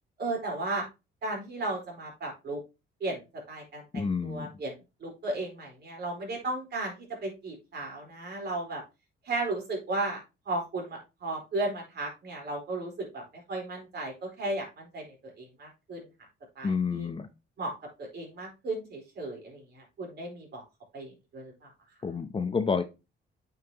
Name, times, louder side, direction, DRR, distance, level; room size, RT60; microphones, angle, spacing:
voice 1, 0.2-0.8 1.2-2.6 3.0-4.7 5.0-8.8 9.2-16.1 16.6-17.1 17.6-17.7 18.0-20.6 20.9-21.7, right 2 dB, 50° right, 0 dB, 4.3 m, -35 dB
voice 2, 3.9-4.5 16.6-17.3 22.0-22.8, left 5 dB, 25° left, 8 dB, 0.7 m, -29 dB
9.0 x 5.7 x 2.9 m, 0.27 s
cardioid pair, 120°, 21 cm